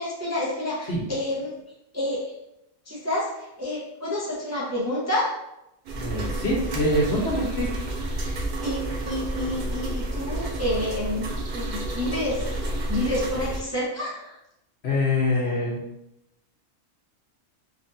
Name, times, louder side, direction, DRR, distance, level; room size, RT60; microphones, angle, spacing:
voice 1, 0.0-1.5 1.9-2.2 2.9-5.3 7.6-7.7 8.2-8.4 8.6-11.3 11.5-14.3, left 1 dB, 15° right, -6 dB, 0.6 m, -29 dB
sound 1, 5.8-13.6, right 1 dB, 70° right, 0.4 m, -30 dB
voice 2, 5.9-7.7 14.8-15.8, left 1 dB, 55° left, -3 dB, 1.2 m, -24 dB
4.1 x 2.9 x 2.6 m, 0.85 s
omnidirectional pair, 1.3 m